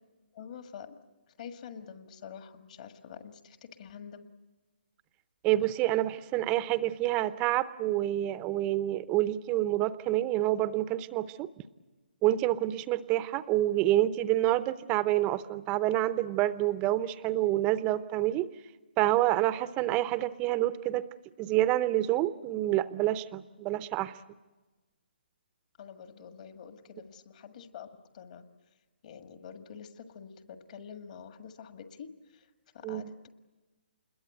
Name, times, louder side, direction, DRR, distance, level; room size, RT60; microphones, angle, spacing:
voice 1, 0.3-1.0 1.4-4.3 19.8-20.0 25.8-27.9 28.1-28.5 29.0-32.5 32.7-33.3, left 7 dB, 45° left, 8 dB, 1.7 m, -47 dB
voice 2, 5.4-11.5 12.2-18.5 19.0-21.1 21.4-24.1 32.8-33.0, right 15 dB, 20° right, 15 dB, 0.7 m, -28 dB
27.0 x 21.5 x 7.8 m, 1.2 s
figure-of-eight pair, 145°, 6 cm